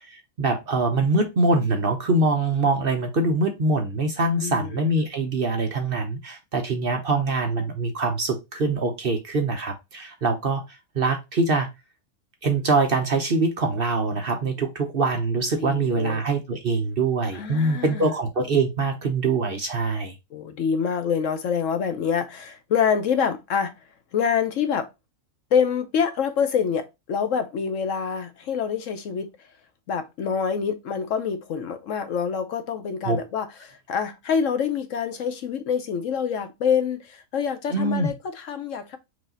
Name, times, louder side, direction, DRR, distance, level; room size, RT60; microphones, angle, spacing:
voice 1, 0.0-10.6 10.9-11.7 12.4-20.1 33.0-33.2 37.7-38.1, right 3 dB, 45° right, 0.9 m, -24 dB
voice 2, 4.4-4.9 15.5-16.2 17.3-18.1 20.3-23.7 24.1-24.9 25.5-29.5 29.9-39.0, left 7 dB, 65° left, 1.0 m, -26 dB
4.7 x 2.8 x 3.8 m
omnidirectional pair, 1.5 m